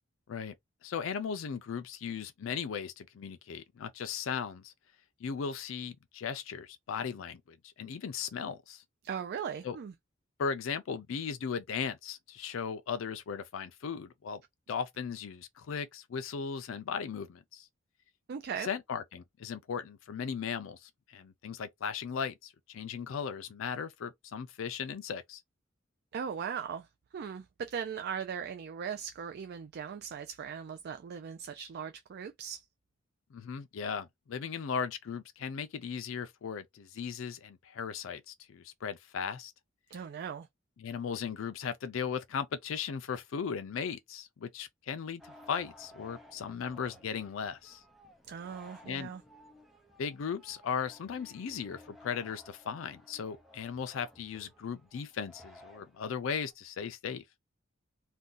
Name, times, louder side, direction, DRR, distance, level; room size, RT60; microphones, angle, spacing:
voice 1, 0.8-4.7 5.2-8.8 9.6-9.8 10.4-14.4 14.7-17.7 18.6-25.4 33.3-39.5 40.8-47.8 48.8-49.1 50.0-57.2, left 6 dB, 75° left, 0.4 m, -37 dB
voice 2, 9.0-9.9 18.3-18.7 26.1-26.9 27.1-32.7 39.9-40.5 48.3-49.2, right 7 dB, 55° right, 0.3 m, -39 dB
sound 1, 45.2-56.5, left 1 dB, ahead, 0.6 m, -57 dB
2.6 x 2.2 x 3.7 m
head